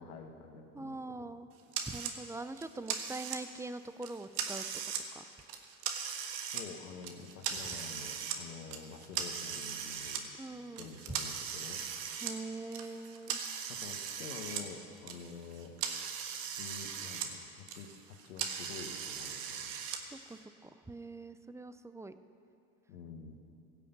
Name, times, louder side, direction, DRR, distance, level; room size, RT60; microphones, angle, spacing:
voice 1, 0.0-1.3 6.5-10.2 10.8-11.8 13.7-15.7 16.5-19.8 22.9-23.4, left 5 dB, 85° left, 5 dB, 1.3 m, -48 dB
voice 2, 0.7-1.5 1.9-4.7 5.1-5.3 10.4-10.9 12.2-13.4 20.1-22.1, right 2 dB, 5° right, 11 dB, 0.4 m, -43 dB
sound 1, 1.7-2.1 2.6-3.6 4.0-5.0 5.4-6.6 7.0-8.4 8.7-10.2 10.8-14.6 14.9-17.3 17.6-20.0, right 8 dB, 65° right, 1.5 m, -39 dB
16.5 x 6.6 x 8.1 m, 2.6 s
hypercardioid pair, 80°, 44 cm